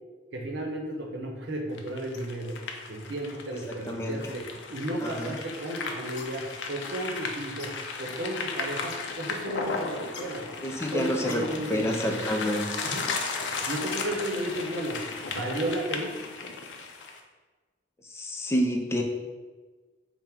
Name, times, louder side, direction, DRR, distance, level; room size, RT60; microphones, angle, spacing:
voice 1, 0.3-2.5 2.9-4.4 4.7-7.7 8.0-10.4 10.8-12.3 12.8-13.1 13.5-15.0 15.3-16.1, right 1 dB, 75° right, 0 dB, 0.7 m, -33 dB
sound 1, 1.7-17.2, left 4 dB, 85° left, 0.4 m, -35 dB
voice 2, 3.9-4.4 5.0-5.3 10.6-12.9 18.1-19.0, equal, 15° left, 2 dB, 0.3 m, -29 dB
3.6 x 2.1 x 4.4 m, 1.3 s
head